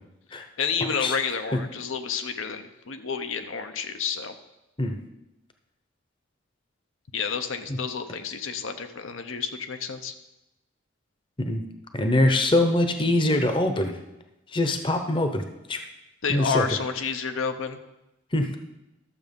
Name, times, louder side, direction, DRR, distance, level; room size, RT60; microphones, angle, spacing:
voice 1, 0.6-4.3 7.1-10.1 16.2-17.8, left 6 dB, 85° left, 7 dB, 0.8 m, -30 dB
voice 2, 11.9-14.0 14.5-15.4 15.7-15.8 16.3-16.7 18.3-18.6, left 1 dB, 25° left, 6 dB, 0.8 m, -23 dB
12.5 x 7.2 x 5.3 m, 0.95 s
head